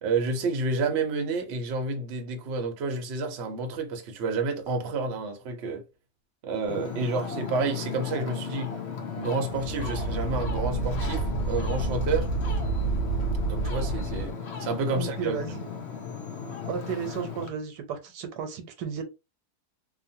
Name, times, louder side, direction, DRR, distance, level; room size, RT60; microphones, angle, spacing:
voice 1, 0.0-5.8 6.4-8.8 9.1-12.3 13.4-15.6, right 3 dB, 60° right, 0.7 m, -30 dB
Ocean, 6.7-17.5, left 6 dB, 60° left, 0.7 m, -36 dB
sound 1, 9.5-14.3, right 3 dB, 75° left, 1.4 m, -29 dB
voice 2, 14.9-15.7 16.7-19.0, right 7 dB, 80° right, 1.2 m, -34 dB
2.9 x 2.1 x 2.7 m
omnidirectional pair, 1.7 m